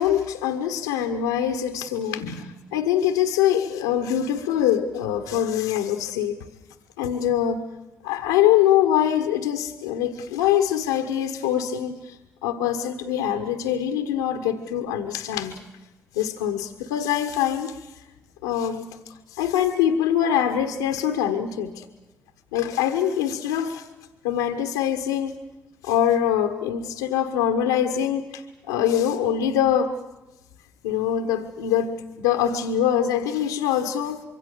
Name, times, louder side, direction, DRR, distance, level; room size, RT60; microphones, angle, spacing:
voice 1, 0.0-6.3 7.0-7.6 8.0-12.1 12.4-15.5 16.1-17.8 18.4-19.0 19.3-21.8 22.5-23.8 24.2-25.3 25.8-28.4 28.7-29.9 30.8-34.2, left 10 dB, 90° left, 6 dB, 1.3 m, -23 dB
25.5 x 23.5 x 6.8 m, 1.0 s
hypercardioid pair, 45°, 6 cm